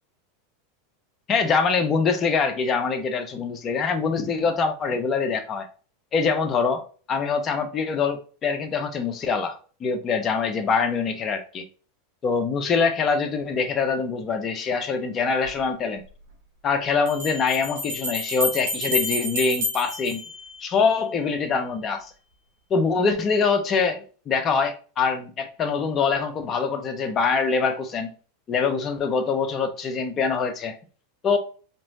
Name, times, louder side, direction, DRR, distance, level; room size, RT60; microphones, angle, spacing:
voice 1, 1.3-5.7 6.1-6.8 7.1-9.5 9.8-11.6 12.2-16.0 16.6-20.2 20.6-22.1 22.7-28.1 28.5-30.7 31.2-31.4, left 5 dB, 30° left, 0.9 m, -24 dB
Bell, 15.4-15.5 17.1-21.0, left 1 dB, 80° right, 2.1 m, -29 dB
4.4 x 3.1 x 2.6 m
hypercardioid pair, 110°, 0 cm